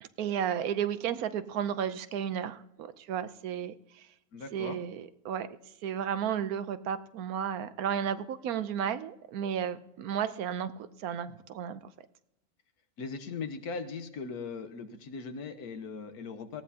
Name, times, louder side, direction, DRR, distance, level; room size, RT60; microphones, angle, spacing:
voice 1, 0.0-3.7 4.5-5.5 5.8-10.7 11.0-11.8, right 8 dB, 80° right, 13 dB, 1.2 m, -33 dB
voice 2, 4.3-4.8 13.0-16.6, left 4 dB, 85° left, 9 dB, 1.5 m, -39 dB
18.5 x 14.5 x 2.8 m, 0.85 s
omnidirectional pair, 1.6 m